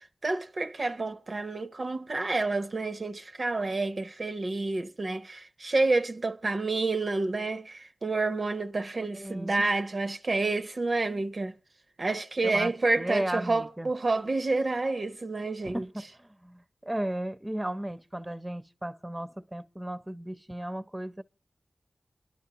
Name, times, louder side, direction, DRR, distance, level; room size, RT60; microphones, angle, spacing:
voice 1, 0.0-11.5 12.0-15.8, right 3 dB, 60° right, 0.6 m, -29 dB
voice 2, 9.1-9.7 12.4-13.9 15.6-21.2, right 1 dB, 20° right, 0.6 m, -35 dB
29.0 x 11.0 x 2.8 m
cardioid pair, 40°, 0 cm